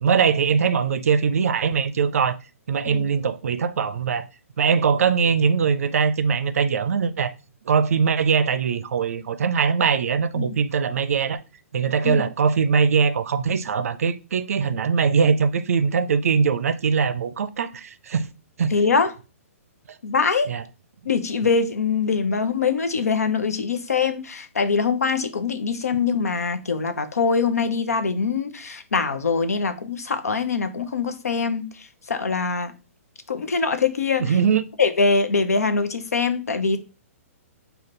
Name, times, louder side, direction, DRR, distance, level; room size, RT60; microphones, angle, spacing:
voice 1, 0.0-2.4 2.7-4.3 4.6-7.3 7.7-11.4 11.7-18.3 18.6-18.7 20.5-20.6 34.2-34.7, right 6 dB, 70° right, 0.4 m, -21 dB
voice 2, 18.7-19.1 20.0-20.5 21.0-32.7 33.3-34.3 34.8-36.8, left 5 dB, 85° left, 0.6 m, -23 dB
5.1 x 2.4 x 3.8 m
hypercardioid pair, 130°, 8 cm